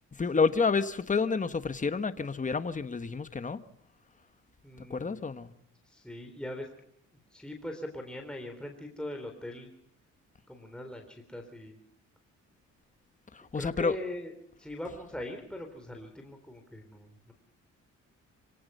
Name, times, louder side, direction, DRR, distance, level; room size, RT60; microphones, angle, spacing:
voice 1, 0.1-3.6 4.9-5.5 13.3-14.0, left 4 dB, 25° left, 11 dB, 1.5 m, -29 dB
voice 2, 4.6-5.2 5.8-6.7 7.3-9.7 10.5-11.8 13.5-14.3 14.6-17.3, left 1 dB, 5° left, 3 dB, 3.6 m, -41 dB
26.5 x 18.0 x 5.6 m, 0.67 s
cardioid pair, 90°, 30 cm